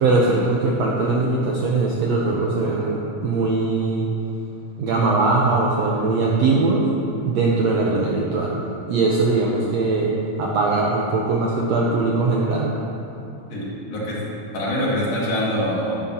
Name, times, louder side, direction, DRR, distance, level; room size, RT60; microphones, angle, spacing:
voice 1, 0.0-4.1 4.8-6.9 7.2-8.6 8.9-12.7, right 3 dB, 70° right, -3 dB, 1.7 m, -21 dB
voice 2, 13.5-14.3 14.5-16.0, equal, 55° left, -6 dB, 3.0 m, -24 dB
11.5 x 11.0 x 2.9 m, 2.7 s
omnidirectional pair, 3.7 m